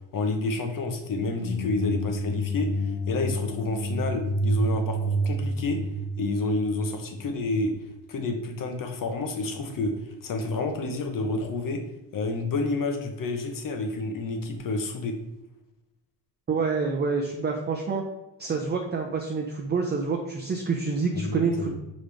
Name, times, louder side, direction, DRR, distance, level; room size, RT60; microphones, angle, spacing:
voice 1, 0.1-5.8 6.2-7.7 8.1-9.9 10.2-11.8 12.1-15.2 21.1-21.8, left 2 dB, 50° left, 5 dB, 1.1 m, -29 dB
sound 1, 1.1-7.1, right 1 dB, 70° left, 1.1 m, -29 dB
voice 2, 16.5-18.0 18.4-21.8, right 4 dB, 25° right, 1 dB, 0.6 m, -27 dB
5.7 x 5.2 x 3.4 m, 0.97 s
cardioid pair, 145°, 42 cm